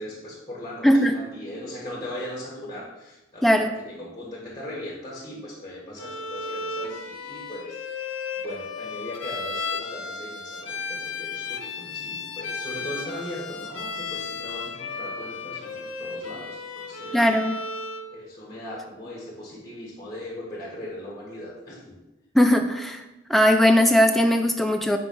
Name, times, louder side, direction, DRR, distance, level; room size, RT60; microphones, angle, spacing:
voice 1, 0.0-8.0 8.4-17.2 18.1-21.9, left 1 dB, 20° left, -3 dB, 1.3 m, -38 dB
voice 2, 0.8-1.1 3.4-3.7 17.1-17.6 22.3-23.0 23.3-25.0, equal, ahead, 4 dB, 0.4 m, -19 dB
Bowed string instrument, 6.0-18.1, left 4 dB, 75° left, 0.6 m, -34 dB
4.7 x 4.0 x 5.3 m, 0.99 s
head